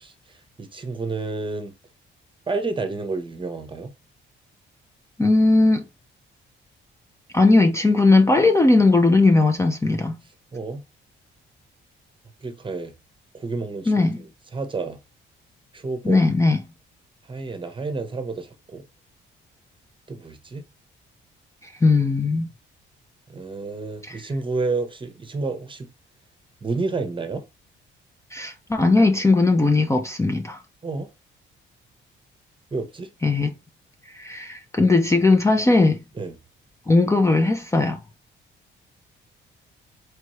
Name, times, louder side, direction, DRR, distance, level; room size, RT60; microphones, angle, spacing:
voice 1, 0.0-1.7 2.5-3.9 10.5-10.8 12.4-12.9 13.3-15.0 15.7-16.3 17.3-18.8 20.1-20.6 23.3-25.9 26.6-27.5 30.8-31.1 32.7-33.1 36.2-36.4, right 3 dB, 25° right, 0.9 m, -30 dB
voice 2, 5.2-5.8 7.3-10.1 13.9-14.2 16.0-16.6 21.6-22.5 24.0-24.2 28.3-30.6 33.2-33.5 34.1-36.0 36.9-38.0, left 3 dB, 15° left, 0.6 m, -18 dB
4.6 x 2.6 x 3.1 m
cardioid pair, 90°, 20 cm